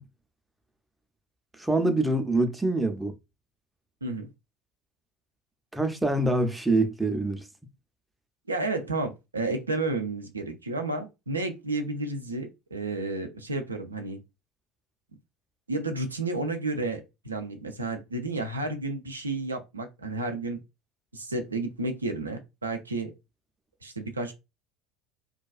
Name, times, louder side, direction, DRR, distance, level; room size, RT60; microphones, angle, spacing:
voice 1, 1.6-3.1 5.7-7.4, right 2 dB, 5° right, 0.5 m, -25 dB
voice 2, 8.5-14.2 15.7-20.6 21.1-23.1 23.8-24.3, right 2 dB, 85° right, 0.4 m, -31 dB
2.3 x 2.2 x 2.3 m
figure-of-eight pair, 65°, 0 cm